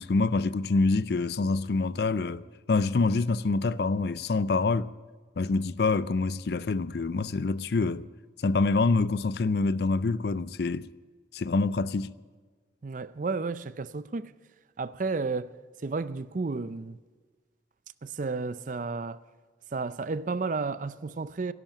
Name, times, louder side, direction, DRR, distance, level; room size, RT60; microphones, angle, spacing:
voice 1, 0.0-2.4 2.7-4.9 5.4-8.1 8.4-10.9 11.3-12.1, left 3 dB, 60° left, 0.4 m, -26 dB
voice 2, 12.8-14.3 14.8-15.5 15.8-17.0 18.0-19.2 19.7-21.5, right 4 dB, 45° right, 0.5 m, -32 dB
12.0 x 11.0 x 8.9 m
head